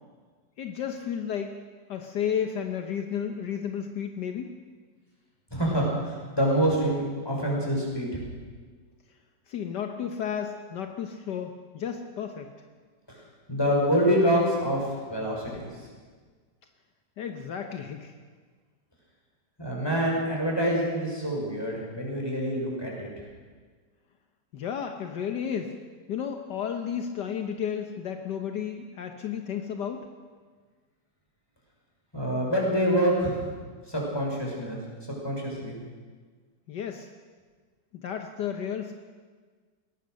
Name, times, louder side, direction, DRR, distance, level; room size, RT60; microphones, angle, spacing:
voice 1, 0.6-1.5 1.9-4.5 9.5-12.5 17.2-18.1 24.5-25.7 26.1-30.1 36.7-37.1 37.9-38.9, left 8 dB, 70° left, 5 dB, 1.7 m, -32 dB
voice 2, 5.5-8.2 13.1-13.2 13.5-15.6 19.6-23.1 32.1-33.5 33.9-34.8 35.2-35.8, equal, 15° left, -2 dB, 6.0 m, -26 dB
22.5 x 18.0 x 6.6 m, 1.5 s
omnidirectional pair, 1.9 m